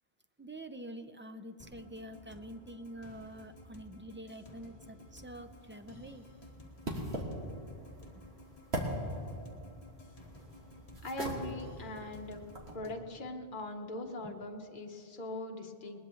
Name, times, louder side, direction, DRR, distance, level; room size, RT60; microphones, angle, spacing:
voice 1, 0.4-6.3 8.1-8.2 14.2-14.5, right 1 dB, 15° right, 8 dB, 0.4 m, -47 dB
sound 1, 1.6-13.0, left 1 dB, 35° left, 1.7 m, -54 dB
sound 2, 5.1-12.8, right 1 dB, 80° right, 2.3 m, -42 dB
voice 2, 11.0-12.4 12.7-16.0, left 1 dB, 50° left, 2 dB, 1.3 m, -41 dB
20.5 x 20.0 x 3.2 m, 2.5 s
omnidirectional pair, 1.1 m